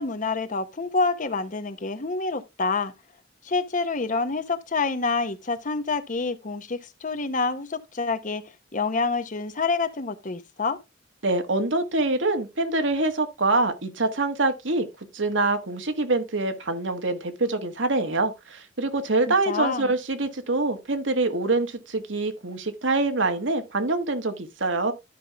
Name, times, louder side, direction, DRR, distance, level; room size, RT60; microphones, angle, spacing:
voice 1, 0.0-2.9 3.4-8.4 8.7-10.8 19.3-19.9, left 4 dB, 45° left, 0.9 m, -27 dB
voice 2, 11.2-14.9 15.1-24.9, right 2 dB, 80° right, 1.5 m, -25 dB
12.0 x 5.5 x 3.4 m
head